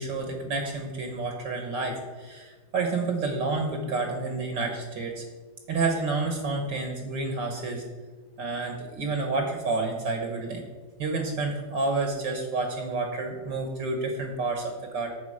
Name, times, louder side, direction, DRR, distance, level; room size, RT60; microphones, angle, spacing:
voice 1, 0.0-5.2 5.7-7.8 8.4-10.6 11.0-15.1, right 3 dB, 60° right, 3 dB, 1.7 m, -29 dB
9.6 x 7.1 x 4.9 m, 1.3 s
omnidirectional pair, 2.4 m